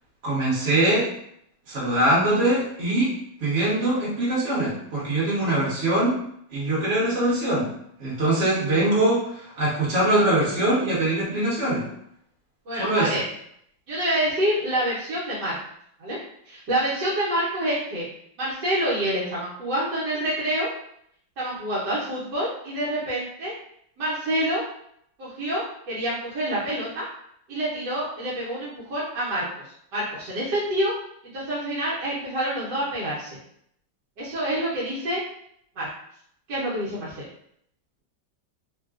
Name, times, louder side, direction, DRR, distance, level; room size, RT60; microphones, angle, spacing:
voice 1, 0.2-1.1 1.7-3.1 3.4-6.1 6.5-7.7 8.0-11.8 12.8-13.1, right 1 dB, 40° right, -7 dB, 1.5 m, -22 dB
voice 2, 12.7-13.2 13.9-15.6 16.0-16.2 16.5-18.0 18.4-20.7 21.4-23.5 24.0-24.6 25.2-27.1 27.5-29.7 29.9-30.9 31.2-33.3 34.2-35.2 35.8-35.9 36.5-37.2, right 1 dB, 65° right, -8 dB, 1.5 m, -27 dB
3.8 x 2.3 x 2.4 m, 0.70 s
omnidirectional pair, 2.0 m